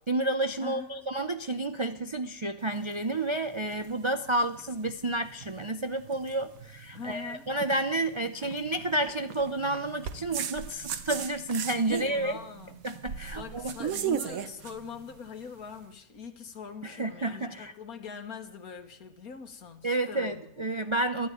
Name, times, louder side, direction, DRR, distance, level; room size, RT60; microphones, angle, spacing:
voice 1, 0.1-12.4 12.8-13.7 16.8-17.7 19.8-21.3, right 2 dB, 50° right, 0.3 m, -30 dB
voice 2, 0.6-1.1 6.9-7.5 11.9-12.8 13.4-20.7, left 6 dB, 75° left, 1.9 m, -42 dB
sound 1, 2.6-15.8, right 8 dB, 70° right, 1.4 m, -38 dB
13.0 x 11.5 x 9.2 m
omnidirectional pair, 1.5 m